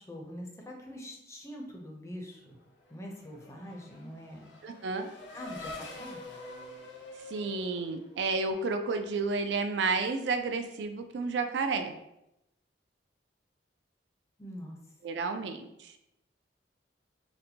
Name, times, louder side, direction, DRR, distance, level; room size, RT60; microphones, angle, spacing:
voice 1, 0.0-2.6 2.9-4.4 5.3-6.2 14.4-14.8, equal, 15° left, 1 dB, 0.5 m, -44 dB
Race car auto racing / Accelerating revving vroom, 2.6-8.7, left 2 dB, 85° left, 0.6 m, -47 dB
voice 2, 4.6-5.1 7.3-11.9 15.0-15.9, right 4 dB, 75° right, 7 dB, 0.3 m, -31 dB
4.0 x 2.1 x 2.7 m, 0.84 s
head